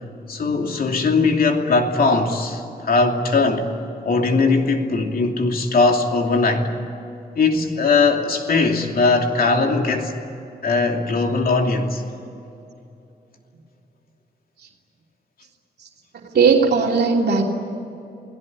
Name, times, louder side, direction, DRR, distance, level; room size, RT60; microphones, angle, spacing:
voice 1, 0.3-3.7 4.0-6.7 7.4-10.1 10.6-12.0, left 3 dB, 60° left, 3 dB, 2.8 m, -19 dB
voice 2, 16.3-17.4, right 5 dB, 80° right, 0 dB, 3.0 m, -17 dB
29.5 x 18.5 x 9.7 m, 2.8 s
wide cardioid pair, 170°, 17 cm